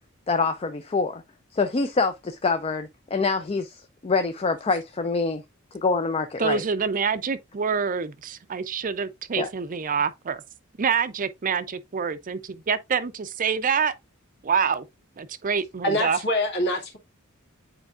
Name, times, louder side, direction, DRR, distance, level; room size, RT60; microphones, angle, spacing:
voice 1, 0.3-1.2 1.5-5.4 5.7-6.6 9.4-9.5, left 4 dB, 30° left, 0.5 m, -25 dB
voice 2, 6.4-10.4 10.8-13.9 14.4-14.9 15.2-16.2, right 6 dB, 40° right, 0.5 m, -26 dB
voice 3, 15.8-17.0, left 1 dB, 55° left, 2.0 m, -25 dB
8.8 x 4.5 x 2.4 m
head